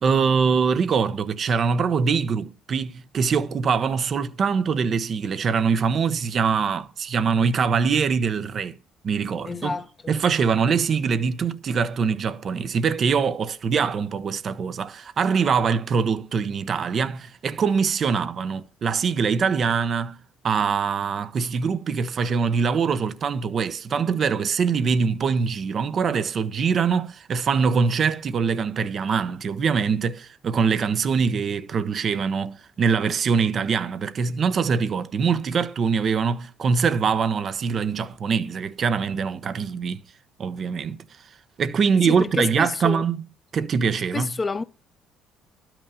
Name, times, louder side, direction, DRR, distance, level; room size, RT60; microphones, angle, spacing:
voice 1, 0.0-8.7 9.0-9.8 10.1-20.2 20.4-40.0 40.4-41.0 41.6-43.2 43.5-44.4, right 6 dB, 50° right, 0.9 m, -23 dB
voice 2, 9.4-9.9 42.0-43.1 44.1-44.6, left 4 dB, 30° left, 0.9 m, -28 dB
12.5 x 6.0 x 7.0 m
supercardioid pair, 70°, 0 cm